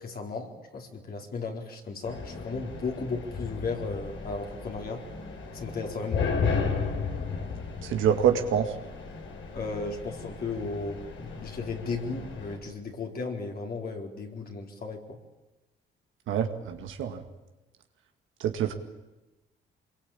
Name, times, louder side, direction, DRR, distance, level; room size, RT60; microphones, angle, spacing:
voice 1, 0.0-5.0 5.5-6.3 9.5-15.2, left 4 dB, 50° left, 1 dB, 4.2 m, -35 dB
sound 1, 2.0-12.6, left 5 dB, 75° left, 5.4 m, -34 dB
voice 2, 7.8-8.7 16.3-17.2 18.4-18.7, right 9 dB, 80° right, 5 dB, 2.2 m, -26 dB
24.5 x 22.5 x 8.8 m, 1.1 s
cardioid pair, 90°, 20 cm